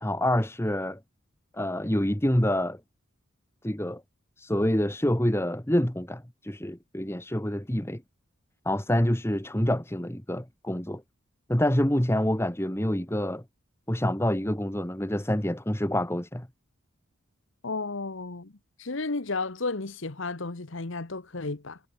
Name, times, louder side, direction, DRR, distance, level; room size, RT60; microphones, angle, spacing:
voice 1, 0.0-1.0 1.5-2.8 3.6-4.0 4.4-8.0 8.6-11.0 11.5-13.4 13.9-16.5, left 1 dB, 10° left, 1.5 m, -27 dB
voice 2, 17.6-18.5 18.8-21.8, left 3 dB, 65° left, 1.2 m, -33 dB
head